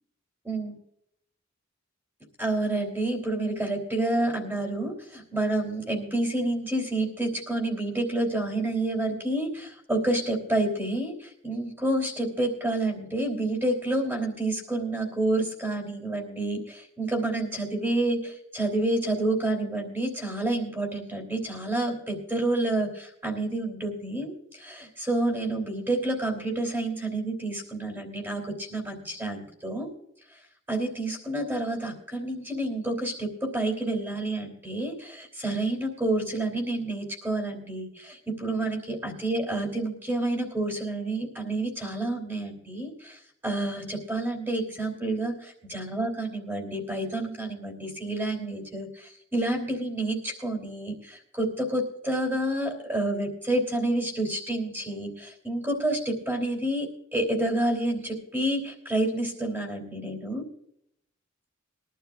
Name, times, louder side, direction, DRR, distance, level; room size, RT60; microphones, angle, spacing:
voice 1, 0.5-0.8 2.4-29.9 30.7-60.5, right 1 dB, 10° right, 0 dB, 3.5 m, -29 dB
22.5 x 12.0 x 2.6 m, 0.73 s
head